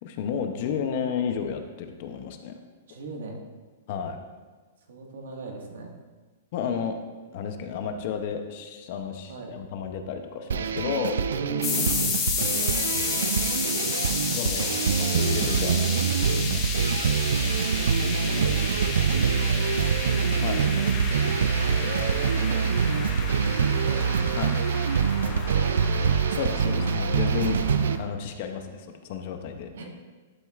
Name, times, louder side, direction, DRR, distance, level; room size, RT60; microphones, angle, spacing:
voice 1, 0.0-2.5 3.9-4.2 6.5-7.0 7.3-11.2 12.8-13.2 14.3-16.0 16.5-16.6 17.3-17.5 20.4-20.6 24.4-24.5 26.3-27.6 28.0-29.7, left 7 dB, 40° left, 6 dB, 0.7 m, -32 dB
voice 2, 2.9-3.5 4.9-5.9 9.3-9.5 11.3-12.0 18.2-24.1 24.8-26.3 27.5-27.9 29.7-29.9, right 3 dB, 70° right, 1 dB, 1.6 m, -39 dB
sound 1, 10.5-28.0, right 6 dB, 90° right, 0.4 m, -25 dB
sound 2, 11.6-28.0, left 5 dB, 20° left, 1.0 m, -32 dB
11.0 x 7.5 x 2.4 m, 1.3 s
hypercardioid pair, 170°, 0 cm